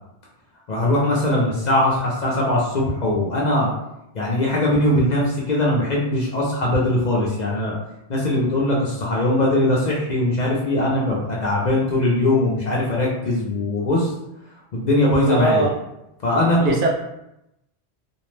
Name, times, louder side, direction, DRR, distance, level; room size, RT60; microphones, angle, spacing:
voice 1, 0.7-3.7 4.1-7.7 8.1-14.1 14.7-15.7 16.2-16.7, left 1 dB, 55° left, -4 dB, 0.5 m, -20 dB
voice 2, 15.3-15.7 16.6-16.9, right 3 dB, 90° right, -1 dB, 0.9 m, -20 dB
2.5 x 2.0 x 3.0 m, 0.86 s
omnidirectional pair, 1.1 m